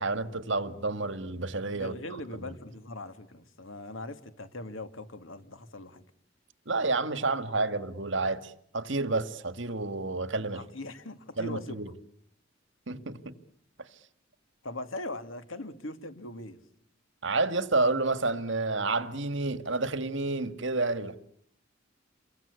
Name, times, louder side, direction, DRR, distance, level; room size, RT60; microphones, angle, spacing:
voice 1, 0.0-1.9 2.3-2.5 6.7-10.6 11.4-11.9 12.9-13.3 17.2-21.2, right 3 dB, 65° right, 1.9 m, -30 dB
voice 2, 1.8-6.0 10.5-11.8 14.6-16.6, left 2 dB, 85° left, 2.6 m, -40 dB
29.0 x 23.5 x 8.3 m
head